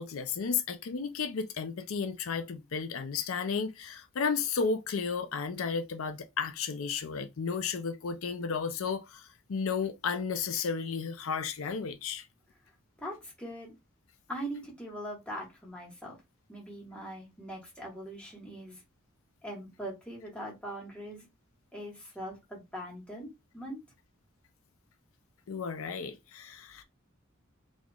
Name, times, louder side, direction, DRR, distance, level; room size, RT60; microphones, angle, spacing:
voice 1, 0.0-12.3 25.5-26.8, left 5 dB, 75° left, 0.5 m, -33 dB
voice 2, 13.0-13.7 14.3-16.2 16.5-18.8 19.4-21.3 21.7-23.8, right 1 dB, 5° left, 1.6 m, -41 dB
4.1 x 3.0 x 2.3 m
head